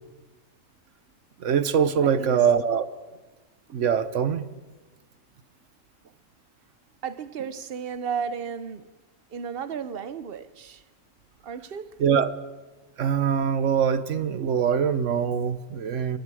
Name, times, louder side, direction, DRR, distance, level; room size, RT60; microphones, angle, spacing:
voice 1, 1.4-2.9 3.7-4.4 12.0-12.3 13.0-16.2, right 7 dB, 70° right, 1.3 m, -23 dB
voice 2, 2.0-2.5 7.0-8.9 9.3-10.8 11.4-12.0, right 7 dB, 50° right, 0.9 m, -34 dB
27.0 x 22.5 x 4.9 m
omnidirectional pair, 1.3 m